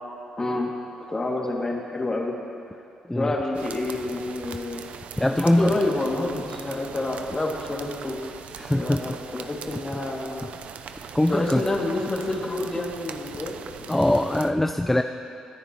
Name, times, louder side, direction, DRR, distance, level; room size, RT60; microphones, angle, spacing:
voice 1, 0.4-0.7 1.1-2.3 3.1-4.8 5.3-8.2 8.7-10.5 11.3-14.1, left 2 dB, 25° left, -2 dB, 2.6 m, -28 dB
sound 1, 3.5-14.5, right 7 dB, 65° right, 0.7 m, -41 dB
voice 2, 5.2-5.7 8.6-9.0 11.1-11.6 13.9-15.0, left 1 dB, 10° left, 6 dB, 0.5 m, -21 dB
25.0 x 10.0 x 3.2 m, 2.6 s
supercardioid pair, 70°, 2 cm